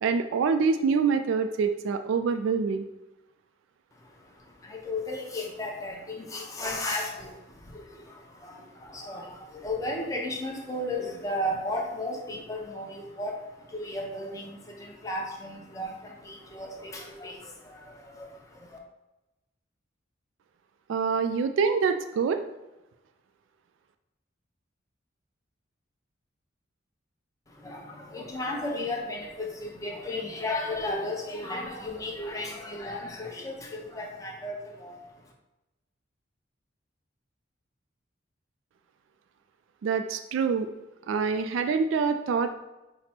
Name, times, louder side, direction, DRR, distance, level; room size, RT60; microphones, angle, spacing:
voice 1, 0.0-2.9 20.9-22.4 39.8-40.7 41.1-42.6, right 5 dB, 75° right, 8 dB, 0.3 m, -25 dB
voice 2, 3.9-18.8 27.5-35.3, left 1 dB, 20° left, -1 dB, 0.7 m, -35 dB
5.8 x 2.0 x 4.2 m, 1.0 s
head